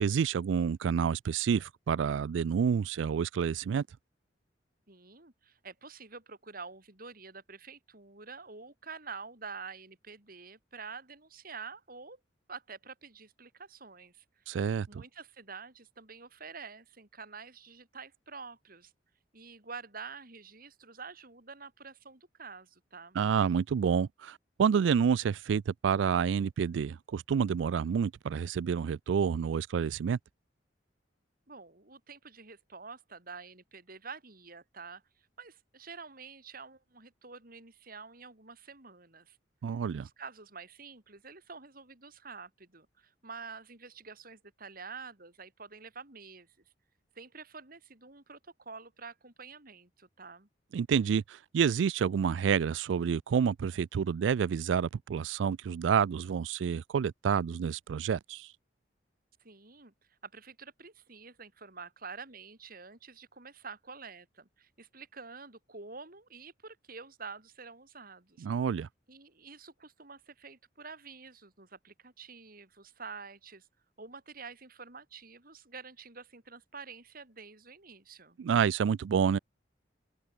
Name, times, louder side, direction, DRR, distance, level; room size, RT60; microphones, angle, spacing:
voice 1, 0.0-3.8 14.5-15.0 23.2-30.2 39.6-40.1 50.7-58.5 68.4-68.9 78.4-79.4, right 7 dB, 85° right, 0.3 m, -29 dB
voice 2, 4.9-12.2 12.5-14.4 14.9-18.9 19.3-23.2 31.5-39.4 40.0-46.5 47.1-50.5 59.4-59.9 60.2-68.5 69.1-73.7 74.0-78.4, right 5 dB, 50° right, 4.5 m, -48 dB
open air
head